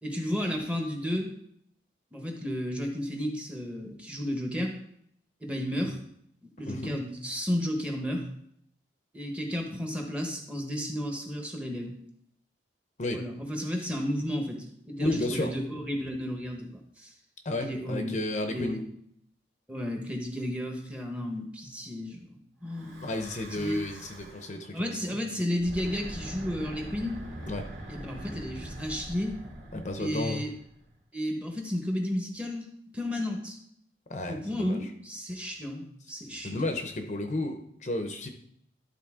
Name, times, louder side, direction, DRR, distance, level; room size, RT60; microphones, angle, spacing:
voice 1, 0.0-1.3 2.1-4.7 5.4-6.0 6.4-8.3 9.1-11.9 13.1-17.1 17.6-18.1 18.4-18.8 19.7-23.1 23.5-23.8 24.7-27.2 27.9-29.4 30.0-30.5 31.1-32.7 32.9-33.6 34.3-36.6, equal, 5° right, 1 dB, 1.0 m, -33 dB
voice 2, 6.7-7.0 13.0-13.2 15.0-15.5 17.4-18.7 23.0-25.2 27.5-27.7 29.7-30.5 34.1-34.8 36.4-38.3, left 2 dB, 40° left, 6 dB, 0.7 m, -32 dB
Breathing / Wind, 22.6-24.6 25.5-30.9, right 1 dB, 80° right, 2.7 m, -43 dB
12.0 x 4.1 x 3.6 m, 0.71 s
head